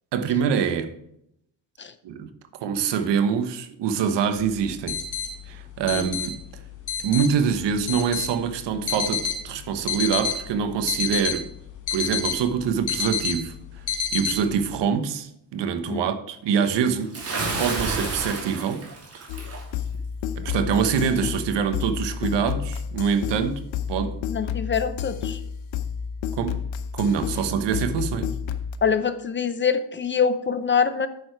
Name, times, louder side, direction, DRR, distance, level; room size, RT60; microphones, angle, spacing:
voice 1, 0.1-0.9 2.0-2.3 2.6-5.0 5.5-6.6 7.0-11.5 11.9-13.5 14.1-17.2 17.6-18.9 19.1-19.3 20.4-24.2 26.3-26.6 26.9-28.3, right 7 dB, 70° right, 1.3 m, -25 dB
sound 1, 4.4-14.8, left 6 dB, 45° left, 2.1 m, -30 dB
Bathtub (filling or washing) / Splash splatter, 17.1-19.6, right 3 dB, 35° right, 2.6 m, -30 dB
sound 2, 19.3-28.8, left 8 dB, 90° left, 0.9 m, -30 dB
voice 2, 24.3-25.4 28.8-31.1, left 6 dB, 25° left, 0.5 m, -24 dB
9.4 x 6.8 x 4.7 m
cardioid pair, 150°, 44 cm